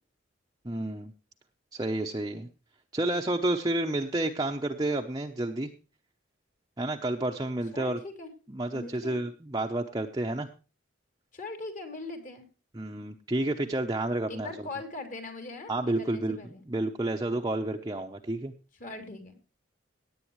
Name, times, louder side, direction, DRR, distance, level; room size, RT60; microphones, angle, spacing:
voice 1, 0.6-1.1 1.7-2.5 2.9-5.7 6.8-8.0 8.5-10.5 12.7-14.5 15.7-16.4 16.7-18.5, right 1 dB, 20° right, 2 dB, 0.8 m, -30 dB
voice 2, 7.7-8.3 8.7-9.2 11.3-12.5 14.3-16.6 18.8-19.5, left 2 dB, 45° left, 6 dB, 3.0 m, -41 dB
17.5 x 9.0 x 3.1 m, 0.32 s
head